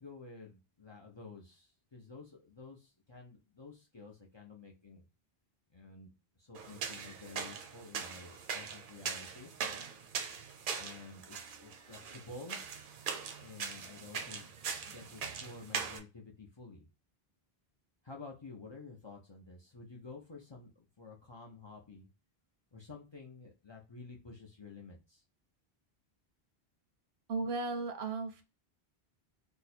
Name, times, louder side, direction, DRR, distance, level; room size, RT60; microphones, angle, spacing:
voice 1, 0.0-5.1 5.7-6.1 6.4-9.5 10.8-12.6 13.4-14.5 14.8-16.9 18.0-22.1 22.7-25.2, left 3 dB, 35° left, -1 dB, 0.5 m, -51 dB
sound 1, 6.5-16.0, right 6 dB, 60° right, 0.7 m, -41 dB
voice 2, 27.3-28.4, right 3 dB, 85° right, 7 dB, 0.9 m, -35 dB
2.7 x 2.2 x 4.1 m, 0.29 s
omnidirectional pair, 1.0 m